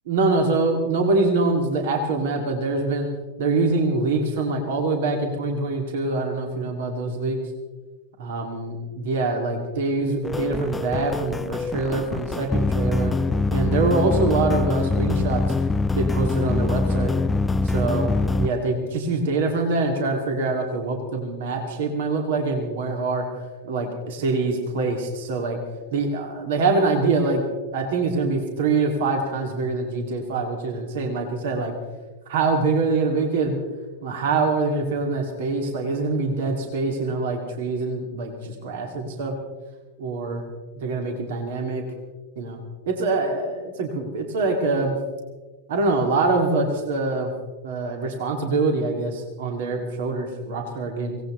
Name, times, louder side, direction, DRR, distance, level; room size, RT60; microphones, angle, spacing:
voice 1, 0.1-3.1 3.4-7.4 8.2-13.1 13.5-15.4 15.9-17.1 17.6-23.2 23.6-25.6 25.9-27.4 27.7-31.7 32.3-33.6 34.0-39.4 40.0-40.4 40.8-41.8 42.4-42.6 42.9-45.0 45.7-47.3 47.6-51.2, right 3 dB, 55° right, 3 dB, 2.5 m, -24 dB
sound 1, 10.2-18.5, left 3 dB, 10° left, 0.4 m, -24 dB
24.5 x 18.0 x 3.3 m, 1.3 s
figure-of-eight pair, 90°, 0 cm